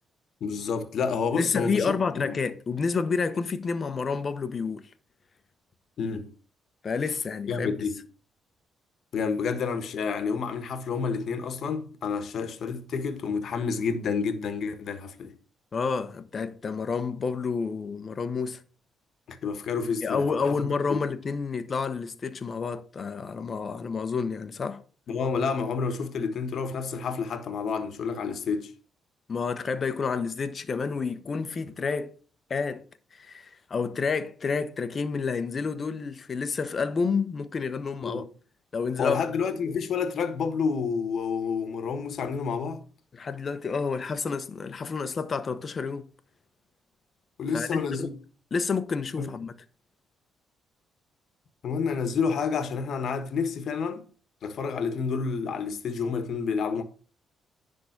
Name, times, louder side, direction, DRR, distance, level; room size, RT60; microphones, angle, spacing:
voice 1, 0.4-1.9 2.1-2.4 6.0-6.3 7.5-8.0 9.1-15.3 19.3-21.0 25.1-28.7 38.0-38.3 39.0-42.8 47.4-48.1 49.2-49.3 51.6-54.0 54.4-56.8, left 5 dB, 65° left, 1.3 m, -29 dB
voice 2, 1.4-4.9 6.8-7.9 15.7-18.6 20.0-24.8 29.3-32.2 32.5-32.9 33.1-38.2 38.7-39.2 43.1-46.1 47.5-48.1 48.5-49.5, left 5 dB, 40° left, 1.0 m, -29 dB
10.0 x 3.8 x 5.8 m
cardioid pair, 90°, 0 cm